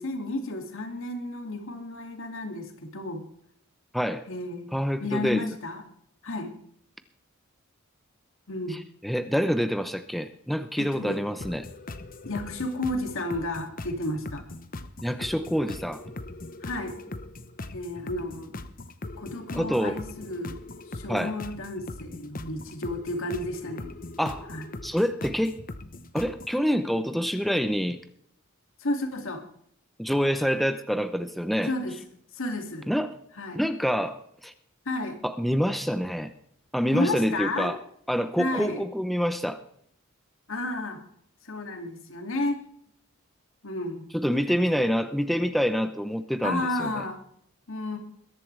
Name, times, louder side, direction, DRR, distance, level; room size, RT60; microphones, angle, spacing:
voice 1, 0.0-3.3 4.3-4.7 5.0-5.8 6.2-6.6 8.5-8.8 10.8-11.2 12.2-14.4 16.6-16.9 17.6-18.5 19.2-20.6 20.9-23.9 24.5-24.7 28.8-29.4 31.7-32.0 32.3-32.9 33.4-33.6 34.9-35.2 36.9-37.8 38.4-38.9 40.5-41.0 41.4-42.6 43.6-44.9 46.4-47.2 47.7-48.0, left 2 dB, 65° left, 5 dB, 2.5 m, -32 dB
voice 2, 3.9-4.2 4.7-5.4 8.7-11.7 15.0-16.0 19.5-20.0 21.1-21.3 24.2-24.5 24.8-25.6 26.1-28.0 30.0-31.7 32.9-33.1 33.5-34.5 35.2-36.3 36.7-37.8 38.1-39.6 44.1-46.9, equal, ahead, 9 dB, 0.8 m, -26 dB
sound 1, 11.4-26.6, left 2 dB, 40° left, 1.0 m, -40 dB
22.0 x 11.0 x 3.4 m, 0.66 s
head